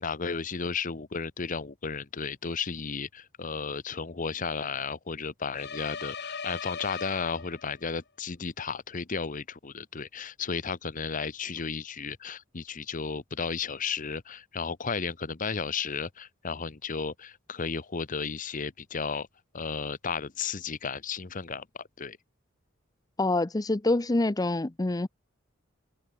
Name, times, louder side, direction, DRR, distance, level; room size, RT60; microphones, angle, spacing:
voice 1, 0.0-19.3 19.5-21.6 22.0-22.2, left 5 dB, 40° left, 0.9 m, -34 dB
sound 1, 5.5-7.9, left 6 dB, 55° left, 3.6 m, -39 dB
voice 2, 23.2-25.1, left 2 dB, 20° left, 0.6 m, -26 dB
head